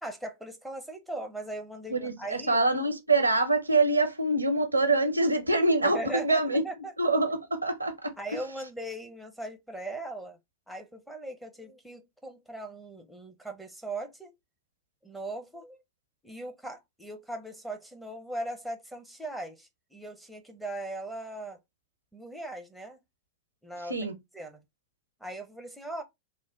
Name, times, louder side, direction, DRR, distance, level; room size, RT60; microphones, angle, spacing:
voice 1, 0.0-2.6 5.8-6.9 8.2-10.4 10.7-14.3 15.0-15.8 16.2-21.6 22.1-23.0 23.6-23.9 24.3-24.6 25.2-26.0, right 1 dB, ahead, 0.7 m, -39 dB
voice 2, 1.9-6.6 7.0-8.4 23.9-24.1, right 2 dB, 85° right, 0.6 m, -25 dB
3.1 x 2.1 x 3.7 m
figure-of-eight pair, 90°, 0 cm